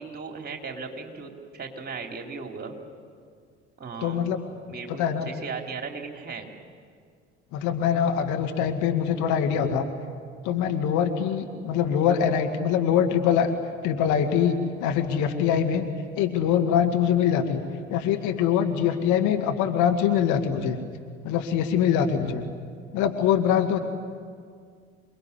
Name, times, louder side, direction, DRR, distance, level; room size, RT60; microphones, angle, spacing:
voice 1, 0.0-2.8 3.8-4.2 4.7-6.5, right 4 dB, 30° right, 3 dB, 3.8 m, -37 dB
voice 2, 4.0-4.4 4.9-5.3 7.5-9.9 10.4-13.5 13.8-15.9 16.2-17.6 17.9-20.8 21.2-22.4 22.9-23.8, left 8 dB, 60° left, 6 dB, 2.2 m, -23 dB
28.0 x 20.0 x 9.9 m, 2.1 s
figure-of-eight pair, 60°, 34 cm